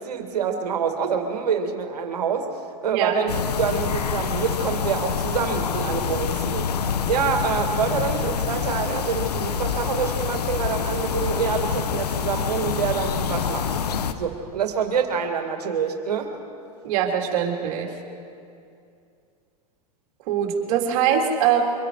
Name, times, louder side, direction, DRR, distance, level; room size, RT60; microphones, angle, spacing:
voice 1, 0.0-6.7 7.1-13.7 14.2-16.4, right 6 dB, 85° right, 4 dB, 2.5 m, -26 dB
sound 1, 3.3-14.1, left 7 dB, 85° left, 1.2 m, -26 dB
voice 2, 16.8-17.9 20.3-21.6, right 8 dB, 60° right, 1 dB, 3.4 m, -22 dB
24.5 x 23.0 x 5.0 m, 2.5 s
hypercardioid pair, 110°, 20 cm